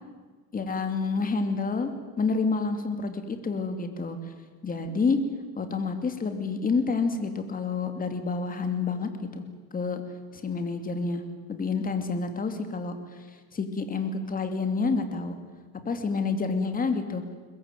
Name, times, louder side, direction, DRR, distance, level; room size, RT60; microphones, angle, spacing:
voice 1, 0.5-1.9 2.2-4.2 4.6-5.2 5.6-9.4 9.7-10.0 10.3-11.2 11.5-13.2 13.5-15.3 15.8-17.2, left 4 dB, 25° left, 7 dB, 2.8 m, -28 dB
22.0 x 20.5 x 9.3 m, 1.4 s
cardioid pair, 130°, 36 cm